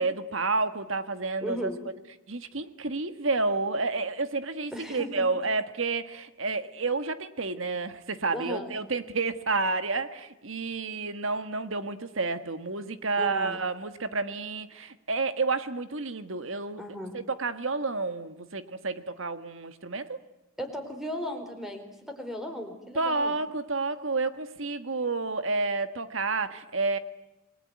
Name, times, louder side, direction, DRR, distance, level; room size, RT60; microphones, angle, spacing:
voice 1, 0.0-1.7 2.3-16.8 17.1-20.2 22.9-27.0, right 3 dB, 65° right, 10 dB, 1.6 m, -30 dB
voice 2, 1.4-1.8 4.7-5.3 8.3-8.7 13.2-13.6 16.8-17.1 20.6-23.3, equal, ahead, 5 dB, 4.3 m, -36 dB
28.5 x 21.0 x 9.4 m, 0.98 s
head